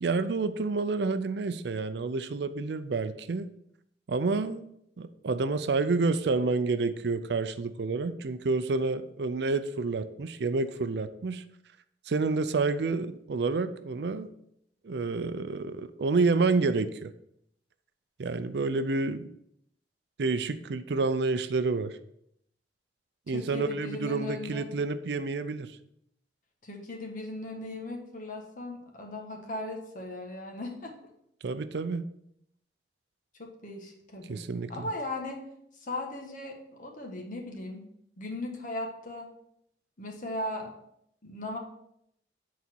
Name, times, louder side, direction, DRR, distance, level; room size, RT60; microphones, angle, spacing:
voice 1, 0.0-3.5 4.1-4.6 5.0-11.4 12.1-14.3 14.8-17.1 18.2-19.3 20.2-22.0 23.3-25.8 31.4-32.0 34.3-34.9, right 3 dB, 70° right, 11 dB, 0.5 m, -29 dB
voice 2, 23.3-24.7 26.6-30.9 33.4-35.4 35.8-37.8 38.2-39.3 40.0-40.7 41.2-41.6, left 1 dB, 50° left, 1 dB, 1.4 m, -38 dB
8.2 x 4.1 x 4.5 m, 0.75 s
head